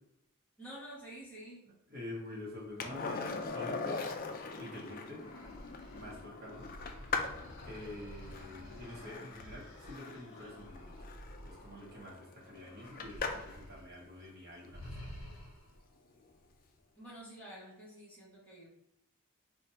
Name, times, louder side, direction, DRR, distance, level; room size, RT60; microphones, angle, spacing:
voice 1, 0.6-1.6 17.0-18.7, right 1 dB, 5° left, -8 dB, 1.1 m, -49 dB
voice 2, 1.9-4.1 4.6-5.2 5.9-6.7 7.6-10.9 11.4-15.0, left 1 dB, 45° right, -4 dB, 1.0 m, -47 dB
Skateboard, 2.8-13.6 16.2-16.3, left 4 dB, 40° left, 0.3 m, -41 dB
sound 1, 5.1-12.3 12.7-13.9 14.2-14.4 14.7-15.8, equal, 60° left, 1.0 m, -51 dB
2.7 x 2.4 x 4.2 m, 0.76 s
head